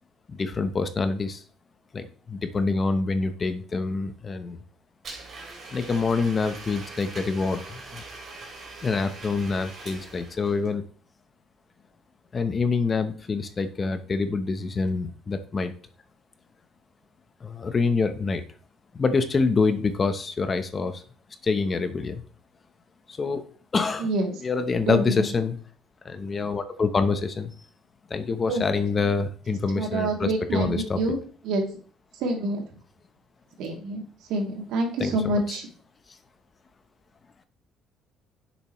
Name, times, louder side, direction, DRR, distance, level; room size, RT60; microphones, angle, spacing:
voice 1, 0.3-1.4 1.9-4.6 5.7-8.0 8.8-10.8 12.3-15.7 17.4-18.4 18.9-21.0 21.4-22.2 23.1-23.4 23.7-24.1 24.4-25.5 26.0-27.5 28.1-31.0 35.0-35.3, left 4 dB, 25° left, 10 dB, 0.8 m, -26 dB
Domestic sounds home sounds, 5.0-10.7, right 3 dB, 35° right, 3.2 m, -42 dB
voice 2, 24.8-25.3 28.5-28.8 29.7-31.2 31.4-31.6 32.2-32.6 33.6-34.0 34.3-35.7, right 2 dB, 80° right, 1 dB, 2.7 m, -27 dB
10.5 x 7.2 x 3.1 m, 0.42 s
cardioid pair, 160°, 0 cm